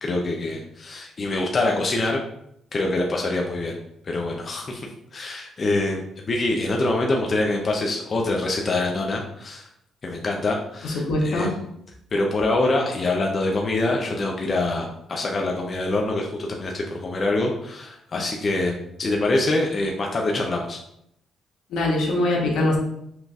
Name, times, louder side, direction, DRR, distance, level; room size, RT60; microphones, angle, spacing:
voice 1, 0.0-2.2 2.7-3.8 4.0-4.9 5.1-9.7 10.0-11.6 12.1-20.8, left 2 dB, 40° left, 0 dB, 0.6 m, -25 dB
voice 2, 10.8-11.5 21.7-22.8, left 1 dB, 80° left, -1 dB, 1.0 m, -22 dB
5.9 x 2.5 x 2.4 m, 0.75 s
cardioid pair, 90°, 0 cm